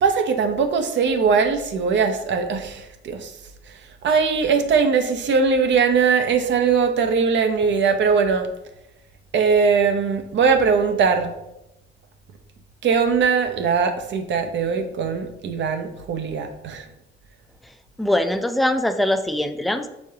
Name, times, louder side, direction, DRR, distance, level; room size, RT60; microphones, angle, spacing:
voice 1, 0.0-3.3 4.0-8.5 9.3-11.3 12.8-16.9, right 5 dB, 65° right, 7 dB, 0.6 m, -20 dB
voice 2, 18.0-19.9, left 1 dB, ahead, 8 dB, 0.3 m, -22 dB
5.1 x 3.7 x 2.8 m, 0.88 s
cardioid pair, 90°, 20 cm